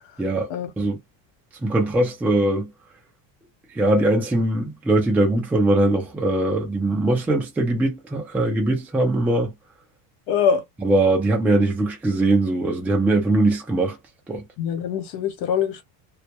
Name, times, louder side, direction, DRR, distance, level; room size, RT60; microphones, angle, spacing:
voice 1, 0.2-0.5 0.8-1.0 1.6-2.7 3.8-9.5 10.8-14.0 14.3-14.4, right 2 dB, 5° right, 0.3 m, -21 dB
voice 2, 10.3-10.6 14.6-15.8, left 7 dB, 65° left, 1.0 m, -23 dB
2.2 x 2.1 x 2.8 m
cardioid pair, 135°, 47 cm